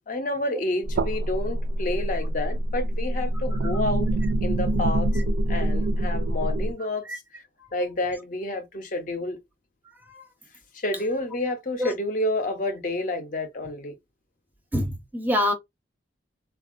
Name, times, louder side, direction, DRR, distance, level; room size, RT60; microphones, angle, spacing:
voice 1, 0.0-4.1 4.4-5.1 5.5-7.1 7.7-9.4 10.7-14.0, left 1 dB, 45° left, 0.6 m, -29 dB
sound 1, 0.8-6.7, right 1 dB, 75° right, 0.3 m, -25 dB
voice 2, 9.9-10.3 11.8-11.9 14.7-15.5, left 1 dB, 10° right, 0.5 m, -27 dB
3.5 x 2.3 x 2.4 m
head